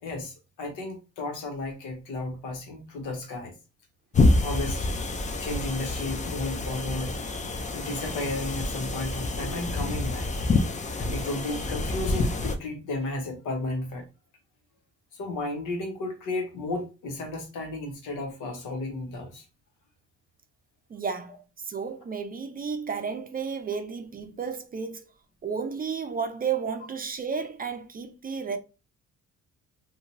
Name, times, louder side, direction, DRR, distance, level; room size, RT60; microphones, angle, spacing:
voice 1, 0.0-3.5 4.4-4.9 5.4-7.2 7.7-10.3 10.8-14.1 15.1-19.4, left 2 dB, 85° left, 1.0 m, -33 dB
sound 1, 4.1-12.6, left 2 dB, 25° left, 0.4 m, -27 dB
voice 2, 20.9-25.0 25.4-28.6, right 6 dB, 30° right, 0.5 m, -32 dB
2.9 x 2.2 x 2.6 m
cardioid pair, 90°, 30 cm